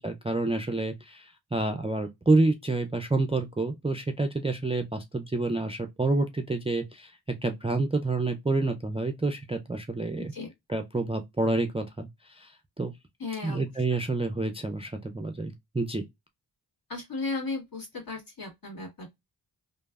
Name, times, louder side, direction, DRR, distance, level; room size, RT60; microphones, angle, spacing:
voice 1, 0.0-7.1 7.4-10.3 10.7-12.9 13.4-16.0, right 2 dB, 15° right, 0.4 m, -28 dB
voice 2, 13.2-13.6 13.9-14.0 16.9-19.2, left 3 dB, 50° left, 1.7 m, -35 dB
3.1 x 2.0 x 2.2 m
wide cardioid pair, 40°, 43 cm